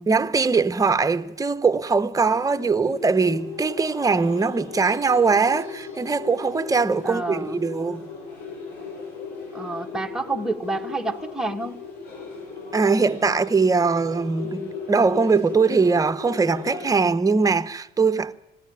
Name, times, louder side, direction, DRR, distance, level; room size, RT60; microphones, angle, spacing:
voice 1, 0.1-8.1 12.7-18.3, right 4 dB, 20° right, 0.9 m, -21 dB
sound 1, 2.1-16.9, left 4 dB, 85° left, 7.4 m, -37 dB
voice 2, 7.0-7.6 9.5-11.8, right 2 dB, 5° right, 1.7 m, -29 dB
20.5 x 16.5 x 9.3 m
cardioid pair, 110°, 17 cm